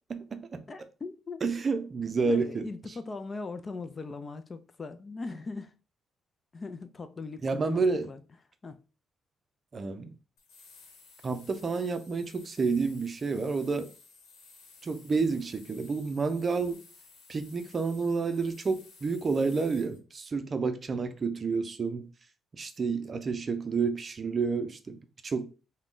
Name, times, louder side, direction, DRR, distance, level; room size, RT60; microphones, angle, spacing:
voice 1, 0.1-0.6 1.4-2.7 7.4-8.1 9.7-10.1 11.2-13.9 14.8-16.8 17.3-22.1 22.6-25.5, right 4 dB, 40° right, 0.5 m, -30 dB
voice 2, 0.7-1.4 1.7-1.8 2.2-5.7 6.5-8.2 8.6-8.8, left 3 dB, 35° left, 0.4 m, -39 dB
sound 1, 10.4-20.0, left 4 dB, 90° left, 1.0 m, -55 dB
3.6 x 2.2 x 3.7 m
cardioid pair, 90°, 0 cm